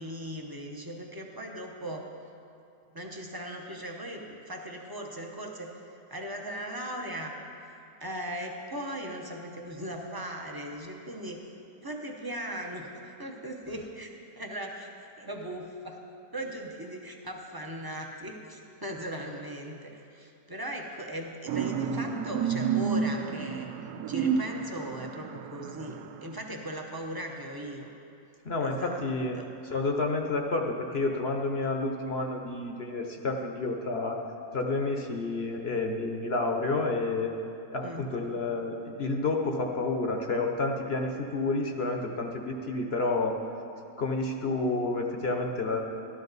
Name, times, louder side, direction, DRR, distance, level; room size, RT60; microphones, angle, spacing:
voice 1, 0.0-2.1 2.9-7.3 7.7-11.4 11.8-14.1 14.4-16.0 16.3-23.7 24.1-27.9 28.6-29.0 29.4-29.5 37.8-38.1, right 1 dB, 25° right, 1 dB, 0.5 m, -38 dB
sound 1, 21.5-26.3, right 6 dB, 80° right, 1.1 m, -30 dB
voice 2, 28.4-29.4 29.7-34.2 34.5-37.3 37.7-43.3 44.0-45.8, left 3 dB, 50° left, 2 dB, 0.8 m, -30 dB
13.0 x 12.5 x 4.0 m, 2.7 s
omnidirectional pair, 1.8 m